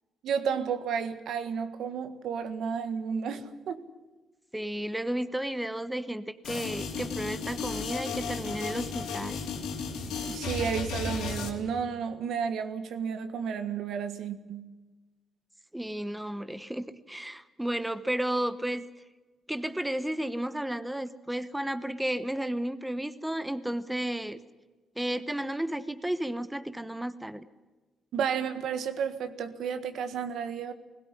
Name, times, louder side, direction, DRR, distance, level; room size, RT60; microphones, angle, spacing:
voice 1, 0.2-3.8 10.3-14.7 28.1-30.7, right 7 dB, 75° right, 1.6 m, -32 dB
voice 2, 4.5-9.4 15.7-18.8 19.5-24.4 25.0-27.5, right 1 dB, 5° right, 1.0 m, -33 dB
sound 1, 6.4-11.5, left 5 dB, 90° left, 3.3 m, -34 dB
20.0 x 17.0 x 9.9 m
cardioid pair, 90°, 0 cm